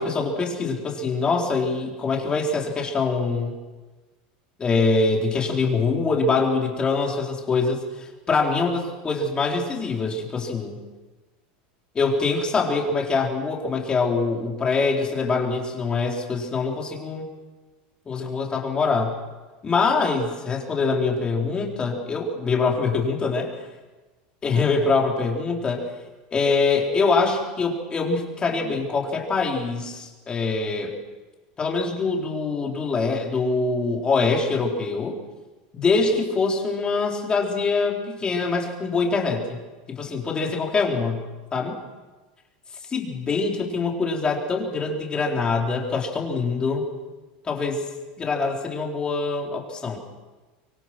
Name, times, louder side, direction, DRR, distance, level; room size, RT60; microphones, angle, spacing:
voice 1, 0.0-3.6 4.6-10.8 11.9-17.2 18.1-19.1 19.6-23.5 24.4-25.8 26.3-30.9 31.6-35.2 35.7-39.6 39.9-41.2 41.5-41.8 42.9-46.8 47.4-47.8 48.2-50.0, left 4 dB, 20° left, 0 dB, 4.2 m, -24 dB
25.5 x 23.0 x 6.2 m, 1.2 s
supercardioid pair, 150°, 5 cm